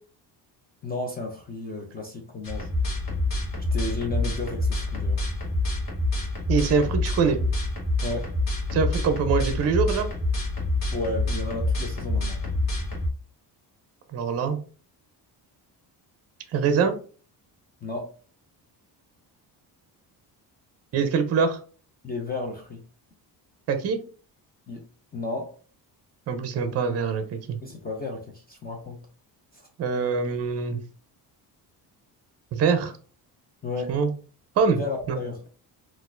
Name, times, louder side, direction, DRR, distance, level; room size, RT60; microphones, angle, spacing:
voice 1, 0.8-2.7 3.7-5.2 8.0-8.3 10.9-12.4 17.8-18.1 22.0-22.8 24.7-24.9 25.1-25.6 27.6-29.0 29.5-29.6 33.6-34.0 34.7-35.4, left 3 dB, 25° left, 2 dB, 0.4 m, -33 dB
sound 1, 2.4-13.1, left 2 dB, 50° left, 1.1 m, -27 dB
voice 2, 6.5-7.4 8.7-10.1 14.1-14.6 16.5-16.9 20.9-21.6 23.7-24.0 26.3-27.6 29.8-30.8 32.5-32.9 33.9-34.1 34.6-34.8 35.1-35.2, right 5 dB, 40° right, 8 dB, 0.5 m, -24 dB
3.9 x 2.4 x 2.5 m, 0.40 s
cardioid pair, 165°, 41 cm